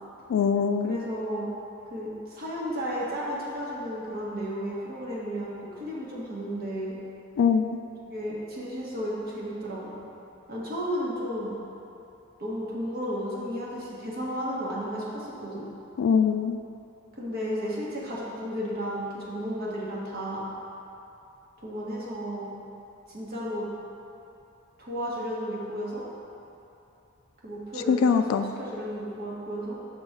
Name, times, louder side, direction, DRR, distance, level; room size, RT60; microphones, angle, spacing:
voice 1, 0.3-1.0 7.4-7.8 16.0-16.6 27.9-28.5, left 6 dB, 75° left, 8 dB, 0.3 m, -23 dB
voice 2, 0.8-1.5 1.9-6.9 8.1-10.0 10.5-11.6 12.4-15.6 17.2-20.4 21.6-22.5 23.1-23.7 24.8-26.0 27.4-29.8, equal, 50° right, -5 dB, 1.4 m, -33 dB
6.2 x 3.9 x 5.9 m, 2.9 s
head